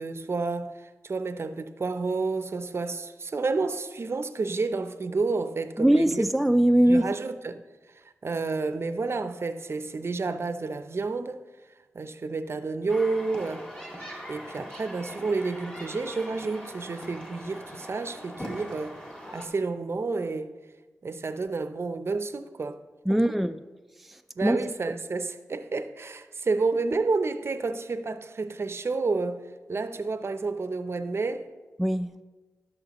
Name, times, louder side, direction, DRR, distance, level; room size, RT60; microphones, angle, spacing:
voice 1, 0.0-6.2 6.9-7.6 7.9-11.4 11.9-13.7 14.3-19.0 19.3-20.5 21.0-22.8 23.1-23.2 24.4-29.4 29.7-31.5, right 3 dB, 50° right, 0.6 m, -30 dB
voice 2, 5.8-7.1 23.1-23.6 24.1-24.7 31.8-32.1, right 1 dB, 5° right, 0.3 m, -22 dB
sound 1, 12.9-19.5, equal, 15° left, 1.9 m, -41 dB
15.5 x 6.5 x 3.0 m
cardioid pair, 60°, 5 cm